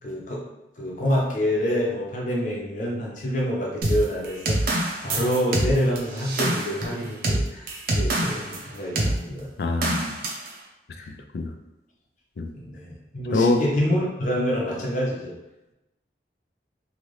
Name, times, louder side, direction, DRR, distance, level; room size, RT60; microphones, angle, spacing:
voice 1, 0.0-0.4 0.8-9.5 11.0-11.1 12.5-15.3, equal, 45° left, -3 dB, 0.8 m, -27 dB
sound 1, 3.8-8.6 9.0-9.2 9.8-10.5, right 1 dB, 55° right, 0.6 m, -25 dB
voice 2, 9.6-10.2 11.1-11.5 12.4-12.5 13.3-13.6, left 3 dB, 65° left, 5 dB, 0.4 m, -24 dB
2.9 x 2.6 x 3.2 m, 0.97 s
head